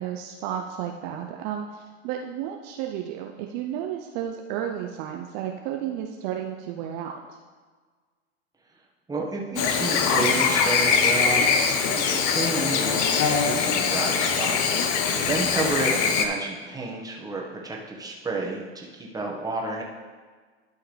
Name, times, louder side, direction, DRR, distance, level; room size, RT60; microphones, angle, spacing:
voice 1, 0.0-7.4 15.1-15.5, right 10 dB, 50° right, 3 dB, 0.7 m, -33 dB
voice 2, 9.1-11.5 11.9-19.8, right 2 dB, 10° right, -2 dB, 1.6 m, -31 dB
Chirp tweet / Buzz, 9.6-16.3, left 6 dB, 50° left, 1.0 m, -22 dB
11.5 x 5.7 x 3.4 m, 1.4 s
hypercardioid pair, 100°, 33 cm